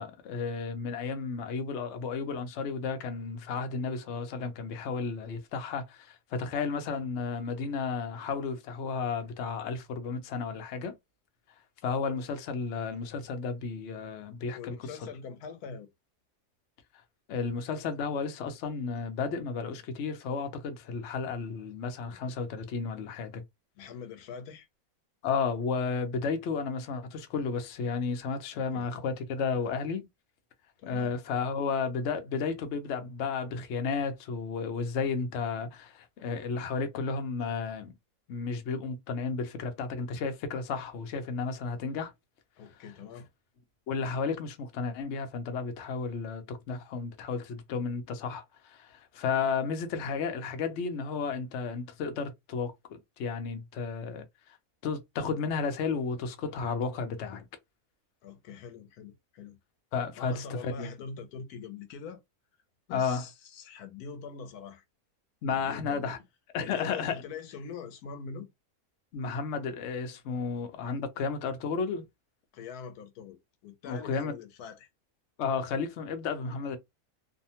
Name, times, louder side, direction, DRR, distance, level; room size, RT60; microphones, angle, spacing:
voice 1, 0.0-10.9 11.8-14.7 15.0-15.1 17.3-23.4 25.2-30.1 30.8-37.9 38.3-42.1 43.9-54.2 54.8-57.5 59.9-60.9 62.9-63.2 65.4-66.2 66.5-67.2 69.1-72.0 73.9-74.3 75.4-76.8, left 5 dB, 60° left, 0.8 m, -33 dB
voice 2, 14.5-15.9 23.8-24.7 28.5-28.9 30.8-31.1 42.6-43.3 58.2-59.6 60.2-62.2 62.9-64.8 65.5-66.1 66.6-68.5 72.5-74.9 76.4-76.7, left 5 dB, 85° left, 1.1 m, -43 dB
2.7 x 2.1 x 2.8 m
omnidirectional pair, 1.6 m